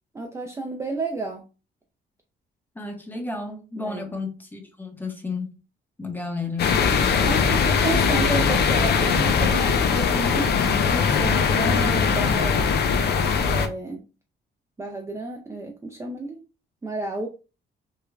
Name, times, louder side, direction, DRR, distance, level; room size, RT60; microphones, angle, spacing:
voice 1, 0.1-1.4 3.8-4.1 7.3-12.7 13.4-14.0 14.8-16.4 16.8-17.3, right 2 dB, 15° right, 0.4 m, -31 dB
voice 2, 2.8-5.6 6.0-6.8 11.7-11.9, left 3 dB, 10° left, 0.7 m, -32 dB
sound 1, 6.6-13.7, left 6 dB, 55° left, 0.5 m, -21 dB
3.2 x 2.1 x 2.3 m
cardioid pair, 90°, 20 cm